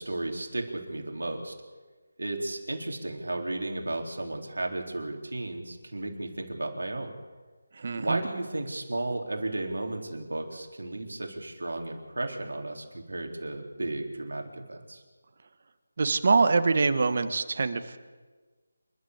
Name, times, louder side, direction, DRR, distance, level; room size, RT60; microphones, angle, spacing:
voice 1, 0.0-1.5 2.2-7.1 8.0-15.0, right 2 dB, 80° right, 2 dB, 4.1 m, -34 dB
voice 2, 7.7-8.2 16.0-18.0, right 4 dB, 50° right, 10 dB, 1.6 m, -24 dB
28.5 x 12.5 x 8.2 m, 1.4 s
figure-of-eight pair, 165°, 0 cm